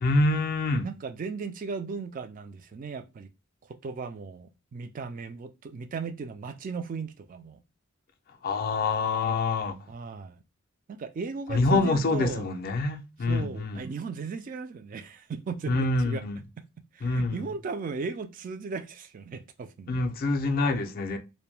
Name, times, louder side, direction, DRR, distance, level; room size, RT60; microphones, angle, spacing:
voice 1, 0.0-0.9 8.4-9.8 11.5-13.9 15.7-16.4 17.0-17.5 19.9-21.2, left 2 dB, 45° left, 0.3 m, -26 dB
voice 2, 0.8-3.3 3.8-7.6 9.9-10.4 10.9-12.5 13.2-16.2 16.9-20.0, right 4 dB, 40° right, 0.3 m, -36 dB
2.2 x 2.1 x 3.0 m
head